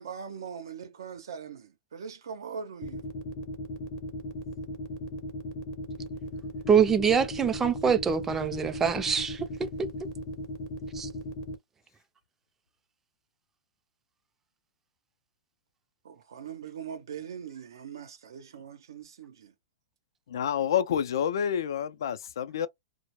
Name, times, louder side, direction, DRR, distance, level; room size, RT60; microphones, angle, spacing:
voice 1, 0.0-3.0 16.0-19.5 20.5-20.6, right 7 dB, 90° right, 0.7 m, -41 dB
sound 1, 2.8-11.5, left 1 dB, 35° left, 0.6 m, -37 dB
voice 2, 6.7-9.5 9.8-9.9 10.9-11.1, right 7 dB, 15° right, 0.4 m, -24 dB
voice 3, 20.3-22.7, left 9 dB, 80° left, 0.4 m, -28 dB
2.1 x 2.0 x 3.0 m
hypercardioid pair, 145°, 2 cm